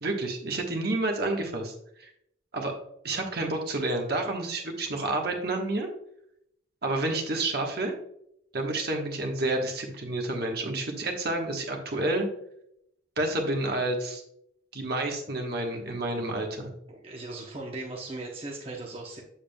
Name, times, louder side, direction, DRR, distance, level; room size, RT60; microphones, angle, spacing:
voice 1, 0.0-2.1 2.5-2.7 3.0-5.9 6.8-7.9 8.5-12.3 13.2-14.2 14.7-16.7, right 2 dB, 55° right, 2 dB, 1.3 m, -29 dB
voice 2, 16.9-19.2, right 2 dB, 30° right, -1 dB, 0.8 m, -38 dB
7.2 x 7.1 x 2.3 m, 0.74 s
head